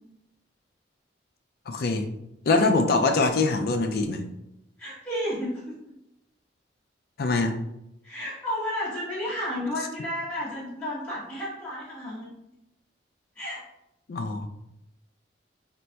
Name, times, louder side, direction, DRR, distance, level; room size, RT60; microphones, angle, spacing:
voice 1, 1.7-2.1 2.4-4.2 7.2-7.6 14.1-14.5, left 3 dB, 55° left, 6 dB, 0.3 m, -23 dB
voice 2, 4.8-5.7 8.0-12.4 13.3-13.6, equal, 10° left, -11 dB, 0.9 m, -32 dB
4.1 x 2.5 x 2.2 m, 0.85 s
head